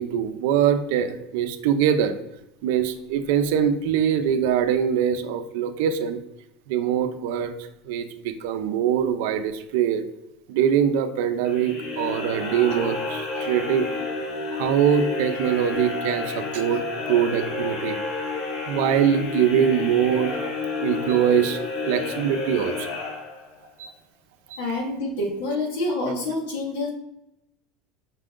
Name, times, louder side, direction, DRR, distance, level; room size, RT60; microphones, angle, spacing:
voice 1, 0.0-2.1 2.6-6.2 6.7-7.5 7.9-10.0 10.5-13.9 14.5-18.0 18.7-20.3 20.7-23.0 23.8-23.9 24.5-24.6, right 8 dB, 75° right, 9 dB, 0.5 m, -23 dB
sound 1, 11.4-23.7, left 3 dB, 60° left, 1.4 m, -30 dB
voice 2, 24.6-26.9, left 2 dB, 90° left, -2 dB, 1.7 m, -27 dB
5.6 x 2.5 x 3.6 m, 0.85 s
supercardioid pair, 130°, 0 cm